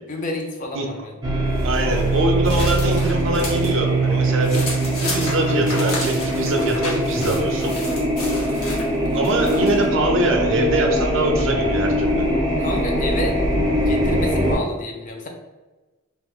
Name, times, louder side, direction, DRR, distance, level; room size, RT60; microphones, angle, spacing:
voice 1, 0.1-1.5 12.6-13.4 13.7-15.3, left 1 dB, 40° left, 2 dB, 0.5 m, -30 dB
sound 1, 1.2-14.5, right 1 dB, 20° right, 0.6 m, -22 dB
sound 2, 1.6-3.7 4.1-9.9, left 2 dB, 85° left, 0.9 m, -33 dB
voice 2, 1.6-4.6 4.9-7.8 9.1-12.2, right 2 dB, 65° right, 2 dB, 0.5 m, -23 dB
2.5 x 2.4 x 3.6 m, 1.2 s
head